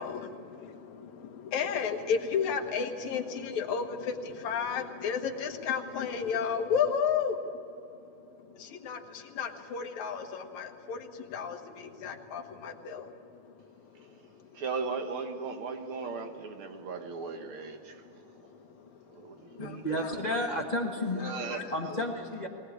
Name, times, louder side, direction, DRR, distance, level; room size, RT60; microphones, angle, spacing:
voice 1, 0.0-14.6 18.1-20.5 21.2-21.8, left 6 dB, 70° left, 2.6 m, -34 dB
voice 2, 14.5-18.5 19.1-20.3 21.1-22.1, right 4 dB, 55° right, 1.8 m, -38 dB
voice 3, 19.6-21.2 21.7-22.5, left 1 dB, 30° left, 0.7 m, -32 dB
20.5 x 20.0 x 8.5 m
omnidirectional pair, 3.5 m